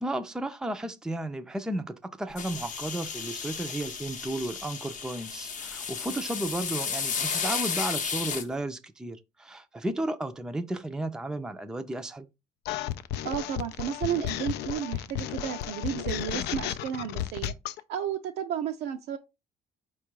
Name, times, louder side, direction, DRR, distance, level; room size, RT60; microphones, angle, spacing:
voice 1, 0.0-12.3, right 1 dB, 5° right, 0.4 m, -33 dB
sound 1, 2.4-8.4, left 6 dB, 45° left, 0.7 m, -33 dB
sound 2, 12.7-17.8, left 12 dB, 80° left, 0.4 m, -33 dB
voice 2, 13.2-17.5 17.9-19.2, right 9 dB, 75° right, 0.5 m, -32 dB
4.7 x 2.3 x 4.5 m
cardioid pair, 110°, 17 cm